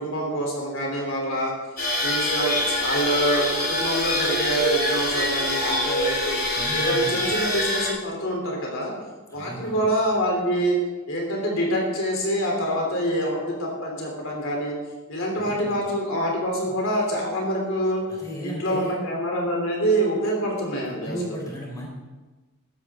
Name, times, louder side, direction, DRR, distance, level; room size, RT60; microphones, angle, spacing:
voice 1, 0.0-1.5 2.0-6.4 6.7-8.9 9.3-10.8 11.1-14.8 15.1-18.0 18.4-21.4, right 1 dB, 60° left, -1 dB, 3.6 m, -26 dB
sound 1, 1.8-7.9, left 1 dB, 40° left, 3.1 m, -24 dB
voice 2, 6.6-7.3 9.3-9.9 15.4-15.8 18.1-19.0 20.9-21.9, equal, 15° left, -3 dB, 3.9 m, -35 dB
15.5 x 13.5 x 3.8 m, 1.2 s
head